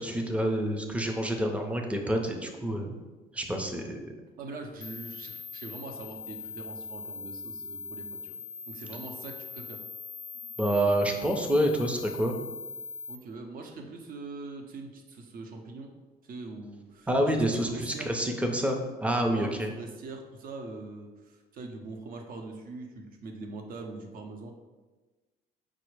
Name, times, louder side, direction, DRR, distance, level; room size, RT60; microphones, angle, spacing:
voice 1, 0.0-3.0 3.3-4.1 10.6-12.3 17.1-19.7, right 1 dB, 10° right, 3 dB, 0.5 m, -28 dB
voice 2, 4.4-8.4 8.7-9.8 13.1-15.9 16.2-17.4 17.6-18.2 19.3-24.5, right 3 dB, 55° right, 3 dB, 0.7 m, -42 dB
sound 1, 4.8-13.2, left 5 dB, 85° left, 0.4 m, -41 dB
4.9 x 2.0 x 4.6 m, 1.2 s
cardioid pair, 110°, 17 cm